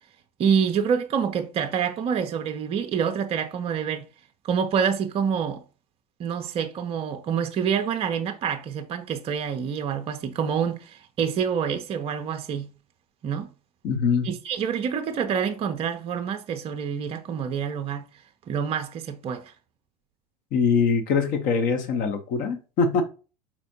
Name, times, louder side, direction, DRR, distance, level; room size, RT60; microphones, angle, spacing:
voice 1, 0.4-4.0 4.4-5.6 6.2-12.7 13.2-13.5 14.2-18.1 18.5-19.5, right 7 dB, 30° right, 0.5 m, -27 dB
voice 2, 13.8-14.3 20.5-23.0, left 5 dB, 45° left, 0.9 m, -23 dB
4.4 x 4.2 x 2.7 m
figure-of-eight pair, 80°, 20 cm